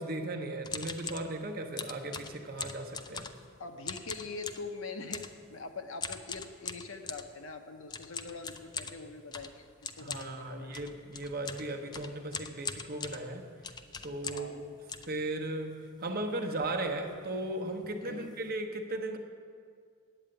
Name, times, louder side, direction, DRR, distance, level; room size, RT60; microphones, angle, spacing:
voice 1, 0.0-3.3 10.0-13.5 14.0-14.8 15.1-19.2, right 2 dB, 45° right, 3 dB, 1.0 m, -36 dB
sound 1, 0.6-1.3 1.8-3.5 3.8-4.7 5.1-5.4 6.0-7.3 7.9-14.6 14.9-15.7 16.2-16.3 16.5-16.8 17.1-17.3 17.8-17.9 18.2-18.5, left 5 dB, 20° left, 0.4 m, -41 dB
voice 2, 3.6-10.8 14.3-14.6 18.0-18.3, left 3 dB, 65° left, 6 dB, 0.9 m, -43 dB
8.9 x 8.7 x 9.0 m, 2.2 s
head